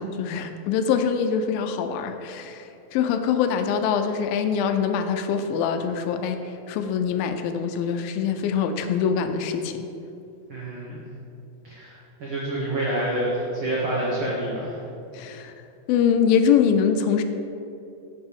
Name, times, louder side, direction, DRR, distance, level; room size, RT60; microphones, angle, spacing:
voice 1, 0.0-9.9 15.1-15.5 15.9-17.2, left 7 dB, 80° left, 8 dB, 2.3 m, -24 dB
voice 2, 10.5-11.0 11.6-14.8, right 1 dB, 80° right, -5 dB, 1.2 m, -28 dB
8.7 x 5.1 x 7.0 m, 2.7 s
omnidirectional pair, 4.3 m